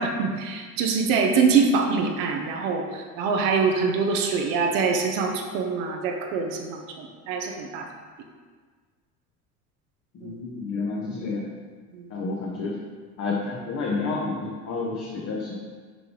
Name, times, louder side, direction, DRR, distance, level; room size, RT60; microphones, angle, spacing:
voice 1, 0.0-7.9 10.2-10.4 11.9-12.1, right 5 dB, 50° right, 3 dB, 0.8 m, -24 dB
voice 2, 10.1-11.4 12.1-12.7 13.2-15.6, left 3 dB, 35° left, -3 dB, 1.0 m, -30 dB
6.1 x 5.2 x 3.1 m, 1.5 s
figure-of-eight pair, 70°, 46 cm